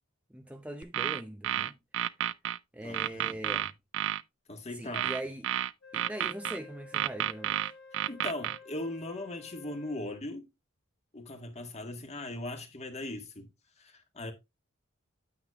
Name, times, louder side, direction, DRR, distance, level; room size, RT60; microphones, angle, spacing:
voice 1, 0.3-1.7 2.7-3.7 4.7-5.5 5.9-7.6, right 1 dB, 5° right, 0.7 m, -41 dB
sound 1, 0.8-2.6 2.9-4.2 4.9-6.6 6.9-8.6, right 11 dB, 65° right, 0.4 m, -31 dB
voice 2, 2.8-3.4 4.5-5.1 8.1-10.5 11.1-13.5 13.8-14.3, left 1 dB, 30° left, 1.6 m, -39 dB
Wind instrument woodwind instrument, 5.8-10.2, left 4 dB, 60° left, 1.4 m, -52 dB
9.2 x 8.0 x 2.4 m
head